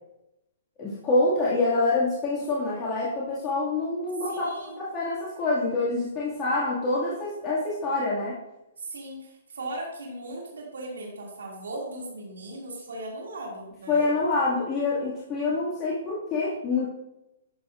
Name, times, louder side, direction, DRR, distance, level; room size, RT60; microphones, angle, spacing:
voice 1, 0.8-8.4 13.9-16.9, left 3 dB, 25° left, -8 dB, 2.1 m, -26 dB
voice 2, 4.3-4.8 8.8-14.1, right 1 dB, 85° right, -2 dB, 2.4 m, -38 dB
11.0 x 7.0 x 2.5 m, 0.90 s
hypercardioid pair, 140°, 0 cm